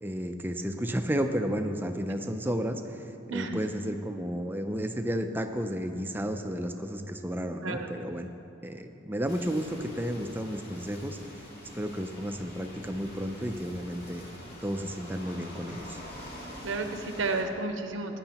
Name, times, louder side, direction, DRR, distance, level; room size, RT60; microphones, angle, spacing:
voice 1, 0.0-8.3 8.6-11.2 11.7-14.2 14.6-16.0, equal, 10° right, 6 dB, 0.5 m, -32 dB
voice 2, 3.3-3.6 7.6-7.9 16.6-18.2, right 3 dB, 75° right, 6 dB, 0.7 m, -32 dB
sound 1, 9.3-17.4, equal, 50° left, 2.2 m, -45 dB
17.5 x 9.8 x 2.9 m, 2.8 s
head